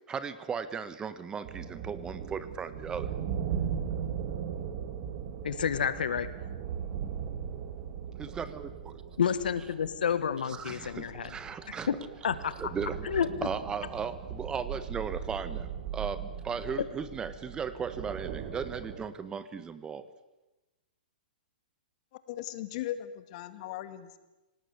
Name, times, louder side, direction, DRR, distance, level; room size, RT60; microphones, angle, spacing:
voice 1, 0.1-3.1 8.2-8.9 10.5-11.9 12.6-20.1, right 6 dB, 15° right, 13 dB, 1.3 m, -37 dB
sound 1, 1.4-19.1, right 8 dB, 45° right, 3.0 m, -38 dB
voice 2, 5.4-6.3 9.2-11.3 11.9-12.0 12.2-12.5 13.0-13.3, left 8 dB, 75° left, 14 dB, 1.7 m, -29 dB
voice 3, 22.3-24.2, left 12 dB, 50° left, 11 dB, 2.2 m, -38 dB
27.0 x 18.5 x 8.4 m, 1.1 s
hypercardioid pair, 130°, 5 cm